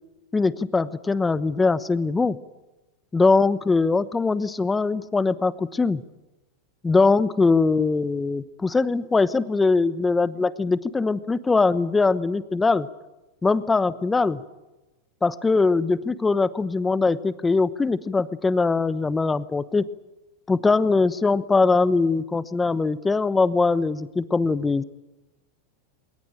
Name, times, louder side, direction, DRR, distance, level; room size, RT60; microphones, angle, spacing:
voice 1, 0.3-2.4 3.1-6.0 6.8-12.9 13.4-14.4 15.2-19.8 20.5-24.8, left 3 dB, 15° left, 15 dB, 1.0 m, -21 dB
21.0 x 18.5 x 9.0 m, 1.0 s
hypercardioid pair, 115°, 0 cm